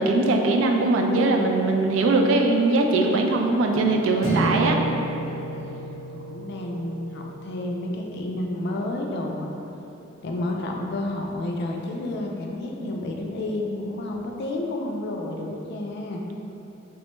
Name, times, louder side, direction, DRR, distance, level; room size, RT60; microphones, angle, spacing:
voice 1, 0.0-4.8, right 2 dB, 80° right, 2 dB, 0.3 m, -21 dB
sound 1, 4.2-8.6, right 1 dB, ahead, 1.0 m, -31 dB
voice 2, 5.2-9.5 10.2-16.2, left 1 dB, 60° left, 1 dB, 0.3 m, -31 dB
3.3 x 2.1 x 2.9 m, 3.0 s
head